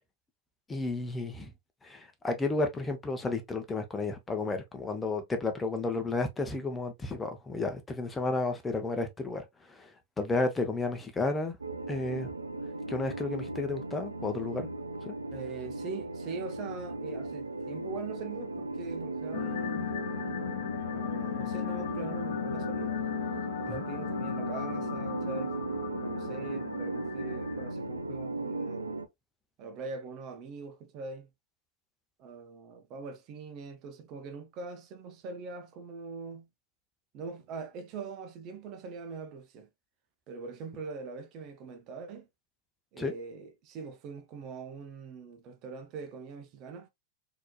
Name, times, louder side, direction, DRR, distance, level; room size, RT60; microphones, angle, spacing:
voice 1, 0.7-1.5 1.8-9.9 10.2-11.6 11.9-12.3 12.9-14.7 15.0-15.1 23.7-23.8 43.0-43.1, left 3 dB, 15° left, 0.9 m, -32 dB
sound 1, 11.6-29.1, right 2 dB, 90° right, 0.5 m, -37 dB
voice 2, 15.3-19.9 20.9-23.0 23.6-25.5 26.0-29.0 29.6-31.3 32.2-36.5 37.1-39.7 40.3-42.3 42.9-46.9, right 4 dB, 40° right, 0.8 m, -42 dB
sound 2, 19.3-27.7, left 12 dB, 60° left, 0.4 m, -36 dB
4.3 x 2.9 x 2.3 m
figure-of-eight pair, 95°, 0 cm